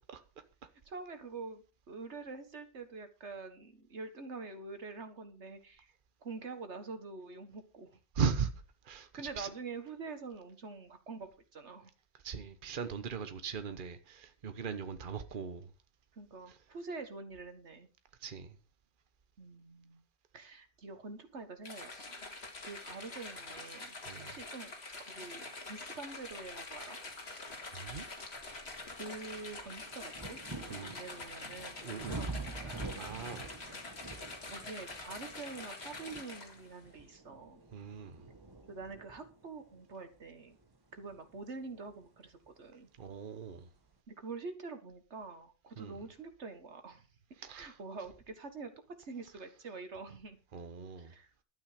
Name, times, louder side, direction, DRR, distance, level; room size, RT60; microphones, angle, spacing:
voice 1, 0.9-5.9 6.2-8.0 9.1-11.9 16.1-17.9 19.4-20.0 20.3-22.3 22.6-24.0 24.3-24.7 25.0-27.0 29.0-32.9 33.2-33.5 34.5-37.6 38.7-40.6 40.9-42.9 44.1-50.4 51.0-51.3, right 4 dB, 85° right, 1.9 m, -46 dB
voice 2, 8.1-8.5 8.8-9.1 9.4-9.5 12.2-15.7 16.5-16.6 18.2-18.6 24.1-24.4 27.7-28.1 30.7-30.9 31.8-32.2 32.9-33.5 37.7-38.3 43.0-43.7 45.8-46.0 47.4-47.8 50.5-51.1, right 6 dB, 50° right, 1.2 m, -38 dB
sound 1, 21.6-36.8, left 3 dB, 70° left, 2.4 m, -46 dB
sound 2, 27.2-27.3 27.9-42.6 43.5-43.6, right 3 dB, 20° right, 1.4 m, -48 dB
12.0 x 9.3 x 5.1 m
omnidirectional pair, 1.1 m